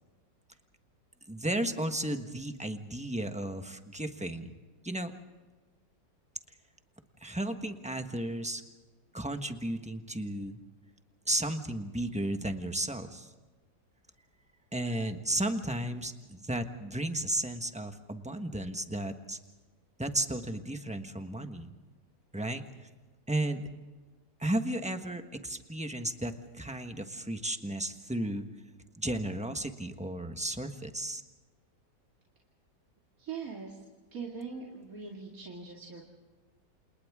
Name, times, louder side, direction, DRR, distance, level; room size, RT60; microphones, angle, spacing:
voice 1, 1.3-4.5 4.8-5.1 7.2-8.6 9.1-10.6 11.3-13.3 14.7-19.4 20.0-21.7 22.3-22.9 23.3-23.6 24.4-28.5 29.0-31.2, right 1 dB, 5° right, 6 dB, 1.0 m, -34 dB
voice 2, 33.2-33.9 34.1-36.0, right 5 dB, 50° right, -2 dB, 2.9 m, -41 dB
28.5 x 28.5 x 3.7 m, 1.3 s
omnidirectional pair, 1.9 m